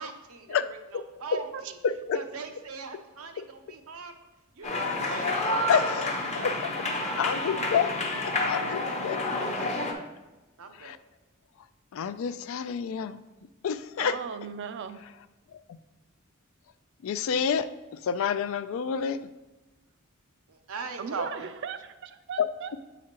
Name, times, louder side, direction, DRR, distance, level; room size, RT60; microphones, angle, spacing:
voice 1, 0.0-1.8 2.1-4.1 4.6-5.3 5.8-6.6 7.0-7.5 8.4-9.0 10.6-11.0 20.5-21.5, right 4 dB, 90° right, 6 dB, 0.7 m, -40 dB
voice 2, 1.8-2.2 3.4-3.5 4.8-5.0 5.7-6.7 7.2-7.9 8.3-9.2 10.8-11.0 11.9-13.2 13.6-14.2 17.0-17.7 18.0-19.2 22.4-22.5, left 7 dB, 70° left, 13 dB, 0.3 m, -28 dB
sound 1, 4.6-9.9, left 2 dB, 30° left, 0.8 m, -29 dB
voice 3, 14.0-15.0 21.0-22.7, right 7 dB, 55° right, 11 dB, 0.4 m, -37 dB
7.4 x 4.9 x 2.9 m, 1.1 s
head